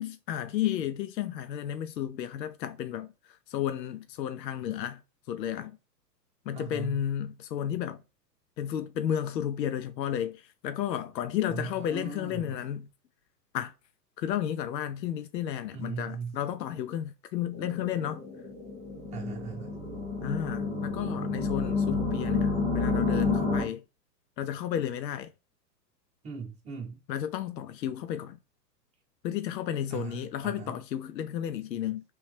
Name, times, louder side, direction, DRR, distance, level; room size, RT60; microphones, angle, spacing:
voice 1, 0.0-5.0 5.3-5.8 6.5-8.0 8.6-12.9 13.5-13.7 14.2-18.2 20.2-23.8 24.4-25.3 27.1-28.4 29.2-32.0, left 10 dB, 80° left, 0.6 m, -32 dB
voice 2, 6.5-7.0 11.5-12.6 15.7-16.4 19.1-19.8 26.2-27.0 29.9-30.7, right 5 dB, 15° right, 0.8 m, -39 dB
sound 1, 17.5-23.6, left 3 dB, 15° left, 0.3 m, -30 dB
3.1 x 3.0 x 3.2 m
hypercardioid pair, 120°, 49 cm